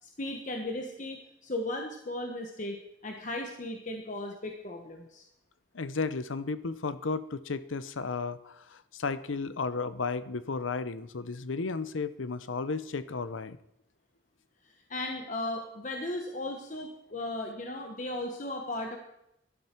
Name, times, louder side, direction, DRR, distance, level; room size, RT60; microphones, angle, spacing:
voice 1, 0.0-2.8 3.0-5.2 14.9-19.0, left 1 dB, 40° left, 2 dB, 1.2 m, -36 dB
voice 2, 5.7-13.6, left 4 dB, 85° left, 14 dB, 0.7 m, -34 dB
17.0 x 12.5 x 4.5 m, 0.82 s
head